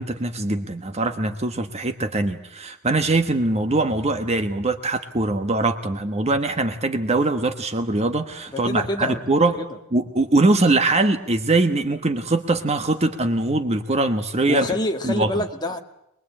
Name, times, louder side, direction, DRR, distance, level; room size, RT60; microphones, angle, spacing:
voice 1, 0.0-9.6 9.9-14.7 15.0-15.3, right 2 dB, 30° right, 8 dB, 1.2 m, -22 dB
voice 2, 8.5-9.8 14.5-15.8, left 1 dB, 20° left, 3 dB, 2.2 m, -27 dB
24.0 x 21.5 x 8.8 m, 0.81 s
head